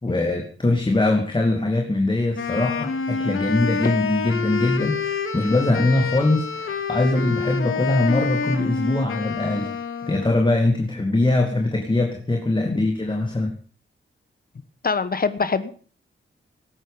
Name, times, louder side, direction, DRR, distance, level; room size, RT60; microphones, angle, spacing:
voice 1, 0.0-9.8 10.1-13.5, left 2 dB, 20° left, 3 dB, 2.5 m, -22 dB
Wind instrument woodwind instrument, 2.3-10.4, left 5 dB, 75° left, 2.5 m, -27 dB
voice 2, 14.8-15.7, left 4 dB, 45° left, 14 dB, 1.3 m, -24 dB
17.0 x 13.0 x 5.3 m, 0.42 s
wide cardioid pair, 105°, 21 cm